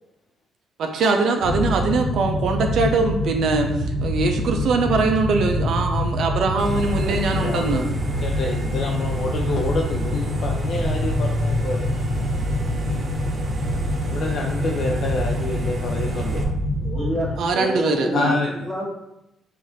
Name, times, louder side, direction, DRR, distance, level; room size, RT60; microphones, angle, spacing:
voice 1, 0.8-3.7 4.0-7.9 17.4-18.3, right 3 dB, 70° right, 4 dB, 0.5 m, -22 dB
sound 1, 1.4-17.3, left 1 dB, 40° left, 1.1 m, -25 dB
sound 2, 6.6-16.4, right 2 dB, 45° right, 0.8 m, -34 dB
voice 2, 6.9-11.9 14.0-16.5 18.1-18.7, left 3 dB, 65° left, 0 dB, 0.5 m, -28 dB
voice 3, 16.8-18.4 18.7-18.9, equal, 10° right, -4 dB, 1.4 m, -27 dB
4.8 x 2.5 x 4.0 m, 0.84 s
cardioid pair, 90°, 0 cm